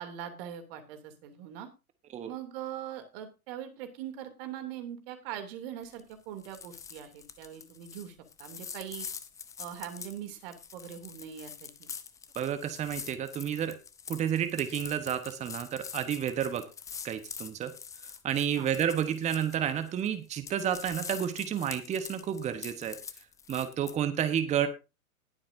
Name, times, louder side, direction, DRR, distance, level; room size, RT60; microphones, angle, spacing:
voice 1, 0.0-1.7 2.3-9.1 9.6-11.9 18.6-18.7, right 10 dB, 40° right, 7 dB, 2.8 m, -42 dB
sound 1, 5.8-6.1 6.4-20.1 20.3-24.0, left 7 dB, 10° left, 0.5 m, -45 dB
voice 2, 12.3-13.8 14.1-16.6 17.0-17.7 18.2-23.0 23.5-24.7, right 9 dB, 15° right, 10 dB, 1.1 m, -30 dB
20.0 x 7.5 x 2.6 m, 0.29 s
figure-of-eight pair, 105°, 43 cm